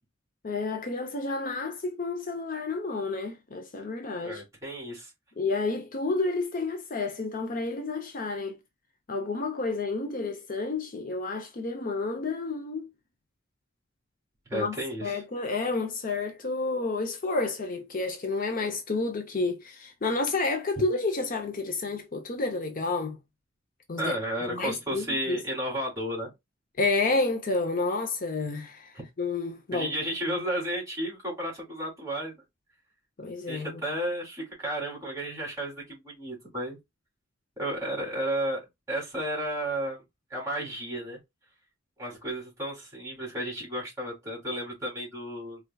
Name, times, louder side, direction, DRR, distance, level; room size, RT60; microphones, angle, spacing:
voice 1, 0.4-4.4 5.4-8.6 9.1-12.9 14.5-23.2 23.9-24.2 24.4-25.4 26.8-30.0 33.2-33.8, left 3 dB, 45° left, 0.7 m, -30 dB
voice 2, 4.2-5.1 14.5-15.2 24.0-26.3 28.9-29.0 29.7-32.3 33.5-36.8 37.6-38.6 38.9-40.0 40.3-41.2 42.0-45.6, right 1 dB, 15° right, 3.0 m, -33 dB
4.5 x 3.7 x 2.2 m
head